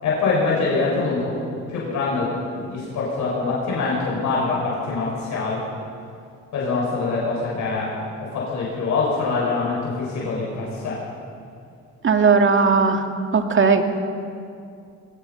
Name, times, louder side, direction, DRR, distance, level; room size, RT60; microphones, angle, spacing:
voice 1, 0.0-1.3 1.7-5.6 6.5-11.0, left 3 dB, 70° left, -5 dB, 6.9 m, -24 dB
voice 2, 12.0-13.0 13.3-13.8, right 5 dB, 40° right, 5 dB, 2.1 m, -17 dB
22.0 x 20.0 x 6.0 m, 2.4 s
cardioid pair, 90°, 30 cm